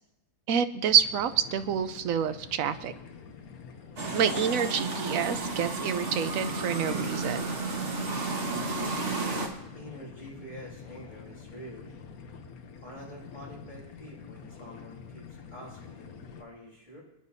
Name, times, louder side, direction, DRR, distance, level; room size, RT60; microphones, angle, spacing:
voice 1, 0.5-2.9 4.1-7.6, right 8 dB, 70° right, 11 dB, 1.0 m, -27 dB
sound 1, 0.9-16.4, left 6 dB, 75° left, 1.4 m, -47 dB
sound 2, 4.0-9.5, right 2 dB, 50° right, 1.7 m, -32 dB
voice 2, 9.7-11.9 12.8-17.0, equal, 30° left, -6 dB, 6.3 m, -47 dB
24.5 x 9.8 x 2.7 m, 0.92 s
omnidirectional pair, 1.6 m